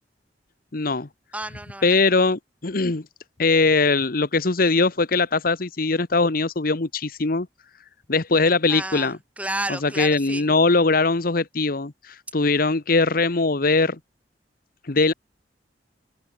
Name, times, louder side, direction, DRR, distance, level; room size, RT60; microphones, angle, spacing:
voice 1, 0.7-1.1 1.8-3.0 3.4-7.5 8.1-9.2 9.8-14.0 14.9-15.1, left 3 dB, 55° left, 1.1 m, -21 dB
voice 2, 1.3-2.0 8.7-10.5, right 1 dB, 10° right, 4.4 m, -32 dB
open air
head